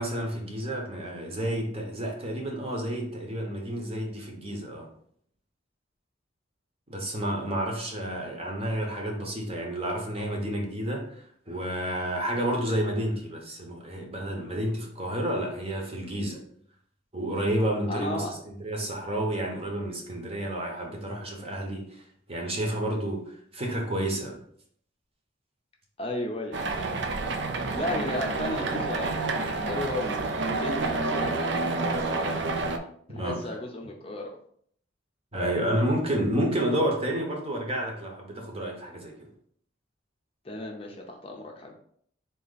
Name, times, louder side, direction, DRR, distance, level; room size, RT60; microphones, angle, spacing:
voice 1, 0.0-4.9 6.9-16.4 17.1-22.0 22.3-24.4 33.1-33.6 35.3-39.3, right 1 dB, 30° right, 0 dB, 0.9 m, -30 dB
voice 2, 17.9-18.3 26.0-26.6 27.7-32.5 33.1-34.3 40.4-41.7, left 1 dB, 30° left, 1 dB, 0.6 m, -34 dB
sound 1, 26.5-32.8, right 3 dB, 65° right, 0.5 m, -29 dB
3.9 x 2.8 x 4.0 m, 0.64 s
head